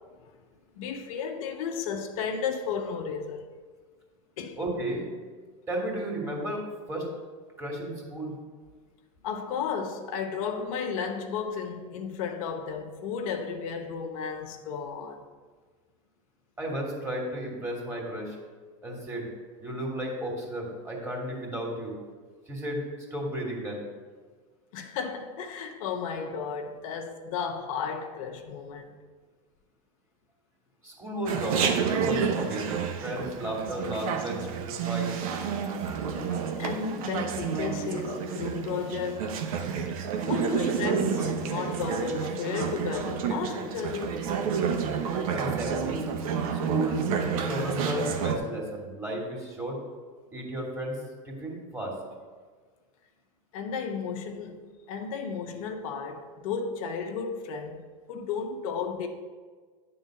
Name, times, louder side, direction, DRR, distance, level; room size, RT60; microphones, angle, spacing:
voice 1, 0.8-3.5 4.4-4.6 9.2-15.3 24.7-29.0 36.5-39.4 40.3-44.2 53.5-57.8 58.1-59.1, left 6 dB, 75° left, 0.9 m, -33 dB
voice 2, 4.6-5.1 5.7-6.6 6.9-7.1 7.6-8.3 16.6-18.3 18.8-19.3 19.6-21.9 22.5-22.8 23.1-23.8 30.8-35.1 45.3-46.0 46.5-47.0 47.5-49.8 50.3-51.0 51.2-51.9, right 1 dB, 15° right, 2.6 m, -33 dB
Chatter, 31.3-48.4, right 6 dB, 85° right, 0.9 m, -30 dB
9.8 x 3.9 x 6.4 m
supercardioid pair, 115°, 18 cm